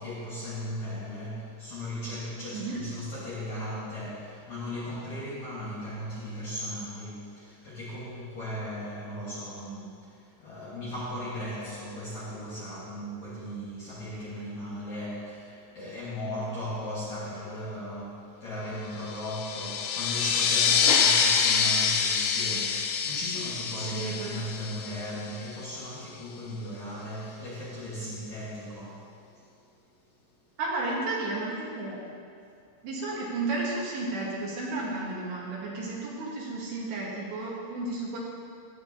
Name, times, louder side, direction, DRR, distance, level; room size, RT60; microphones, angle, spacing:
voice 1, 0.0-29.5, equal, 65° left, -9 dB, 1.9 m, -37 dB
sound 1, 19.1-25.3, left 6 dB, 80° left, 2.7 m, -26 dB
voice 2, 23.8-24.4 30.6-32.0 32.8-38.2, right 2 dB, 70° right, -4 dB, 3.4 m, -33 dB
15.0 x 10.0 x 2.8 m, 2.4 s
omnidirectional pair, 5.6 m